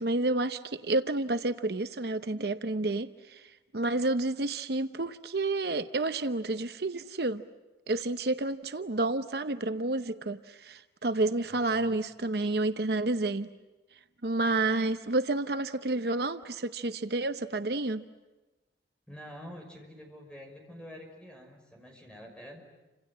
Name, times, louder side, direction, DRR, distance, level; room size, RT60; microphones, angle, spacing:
voice 1, 0.0-7.4 7.9-13.5 14.2-18.0, right 2 dB, 60° right, 10 dB, 0.8 m, -30 dB
voice 2, 11.5-12.0 19.1-22.6, equal, 5° left, 2 dB, 5.8 m, -47 dB
30.0 x 26.5 x 7.5 m, 1.2 s
head